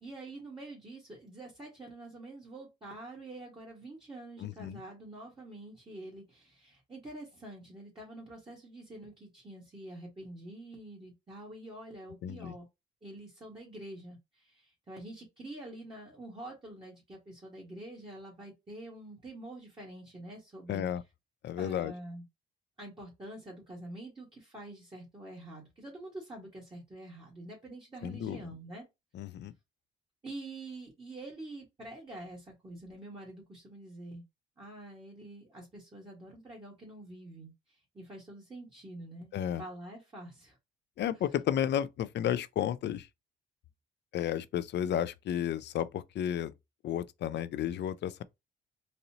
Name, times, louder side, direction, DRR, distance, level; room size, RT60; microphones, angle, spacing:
voice 1, 0.0-12.7 13.0-20.9 21.6-22.2 22.8-28.8 30.2-34.2 34.6-39.3 39.6-40.6, right 1 dB, 25° right, 1.8 m, -46 dB
voice 2, 4.4-4.8 12.2-12.5 20.7-21.0 21.4-21.9 28.0-28.4 29.1-29.5 39.3-39.6 41.0-43.1 44.1-46.5 46.8-48.2, left 10 dB, 60° left, 0.5 m, -32 dB
4.1 x 2.6 x 2.8 m
cardioid pair, 90°, 20 cm